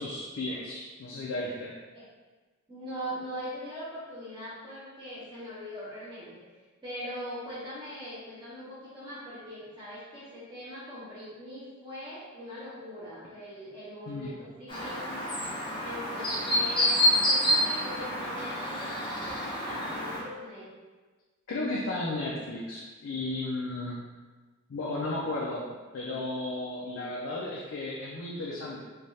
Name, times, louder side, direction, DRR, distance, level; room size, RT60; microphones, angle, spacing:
voice 1, 0.0-1.7 14.1-14.3 21.5-24.0 24.7-25.6 25.9-28.8, left 2 dB, 70° left, -4 dB, 0.4 m, -34 dB
voice 2, 2.7-6.3 6.8-15.3 15.8-17.0 17.3-20.7, equal, 20° right, -11 dB, 0.7 m, -41 dB
Chirp tweet, 14.7-20.2, equal, 25° left, 0.6 m, -28 dB
3.2 x 2.3 x 2.6 m, 1.3 s
head